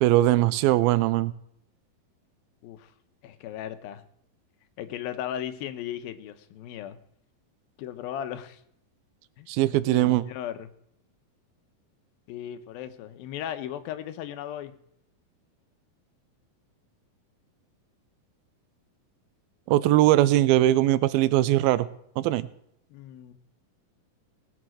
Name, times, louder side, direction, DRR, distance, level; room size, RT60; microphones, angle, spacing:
voice 1, 0.0-1.3 9.5-10.2 19.7-21.9 22.2-22.5, right 15 dB, 90° right, 16 dB, 2.5 m, -21 dB
voice 2, 3.2-4.0 4.8-7.0 7.8-8.6 9.4-9.5 9.9-10.7 12.3-14.7 22.9-23.3, left 10 dB, 85° left, 11 dB, 2.7 m, -36 dB
19.0 x 7.3 x 6.3 m, 0.73 s
omnidirectional pair, 4.2 m